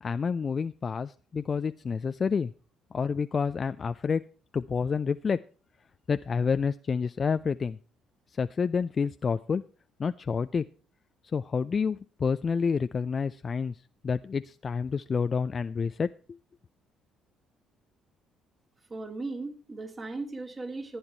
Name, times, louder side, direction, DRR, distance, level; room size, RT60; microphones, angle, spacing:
voice 1, 0.0-2.5 2.9-4.2 4.5-5.4 6.1-7.8 8.4-9.6 10.0-10.6 11.3-13.8 14.0-16.1, left 5 dB, 40° left, 12 dB, 0.5 m, -28 dB
voice 2, 18.9-21.0, right 3 dB, 30° right, 3 dB, 2.9 m, -37 dB
14.5 x 9.7 x 4.4 m, 0.37 s
figure-of-eight pair, 50°, 0 cm